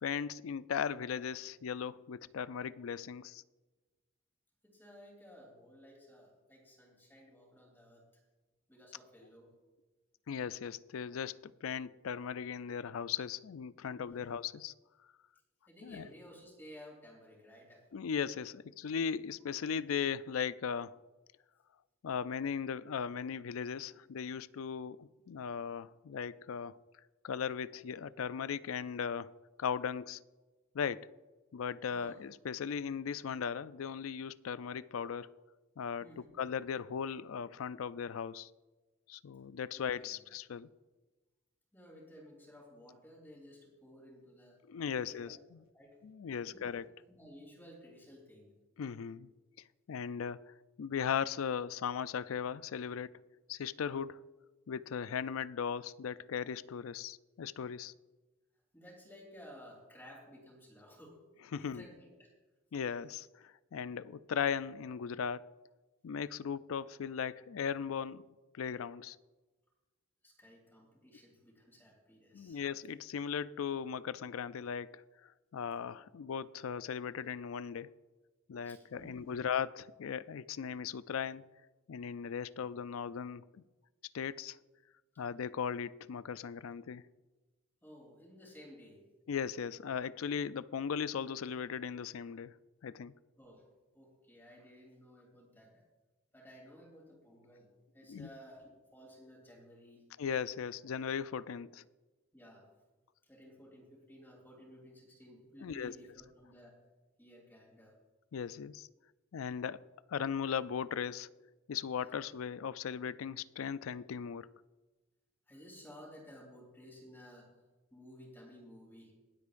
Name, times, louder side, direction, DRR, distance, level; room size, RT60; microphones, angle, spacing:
voice 1, 0.0-3.4 10.3-14.7 15.8-16.1 17.9-21.0 22.0-26.8 27.2-30.2 30.7-31.1 31.5-35.4 35.8-36.1 36.4-38.5 39.1-40.7 44.7-45.6 46.0-46.9 48.8-49.3 49.9-53.2 53.5-54.2 54.7-57.9 61.5-61.8 62.7-65.5 66.0-68.2 68.5-69.2 72.3-77.9 78.5-81.4 81.9-83.5 84.1-84.6 85.2-87.0 89.3-92.5 92.8-93.1 98.1-98.3 100.2-101.8 105.6-106.0 108.3-108.9 109.3-111.3 111.7-114.5, left 7 dB, 90° left, 0.4 m, -38 dB
voice 2, 4.6-8.1 8.7-9.5 13.9-14.3 15.7-17.9 31.9-32.1 36.0-36.4 39.7-40.2 41.7-44.6 45.0-45.3 45.7-46.0 46.4-46.8 47.1-48.5 58.7-61.2 61.6-62.3 70.2-72.6 78.6-79.3 87.8-89.0 93.4-93.6 93.9-95.8 96.3-100.0 102.3-102.7 103.2-106.8 107.2-107.9 115.5-117.5 117.9-119.1, equal, 10° left, 3.1 m, -55 dB
22.5 x 8.3 x 2.5 m
head